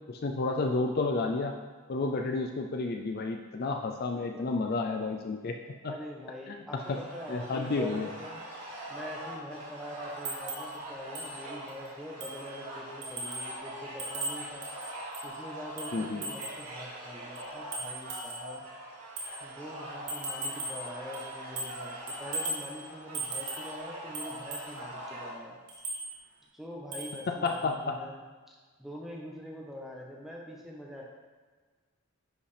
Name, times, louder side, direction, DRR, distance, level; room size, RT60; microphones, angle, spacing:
voice 1, 0.1-1.6 1.9-5.9 6.5-6.6 6.9-7.0 7.3-8.1 15.9-16.3 27.3-28.0, left 3 dB, 45° left, 4 dB, 0.4 m, -31 dB
voice 2, 4.1-4.8 5.8-8.4 8.9-14.7 15.2-18.6 19.4-25.6 26.5-31.0, equal, ahead, -2 dB, 1.1 m, -44 dB
sound 1, 6.8-25.3, right 1 dB, 80° right, 2.0 m, -43 dB
sound 2, 10.3-10.7 11.2-11.3 11.7-11.8 12.2-12.5 13.0-13.5 14.0-15.3 15.8-16.6 17.4-18.5 19.2-19.3 20.1-20.9 21.1-21.8 22.1-22.7 23.1-23.7 24.1-24.7 25.7-26.0 26.9-27.2 27.5-27.6, right 2 dB, 55° right, 1.4 m, -37 dB
10.5 x 5.2 x 3.4 m, 1.4 s
head